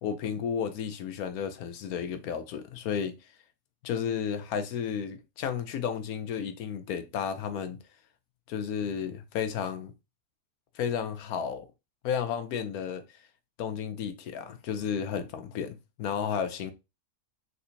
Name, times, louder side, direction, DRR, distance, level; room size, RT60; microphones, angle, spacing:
voice 1, 0.0-3.1 3.8-7.8 8.5-9.9 10.7-11.7 12.0-13.0 13.6-16.7, left 7 dB, 75° left, 1.1 m, -32 dB
4.3 x 3.8 x 2.7 m
omnidirectional pair, 1.6 m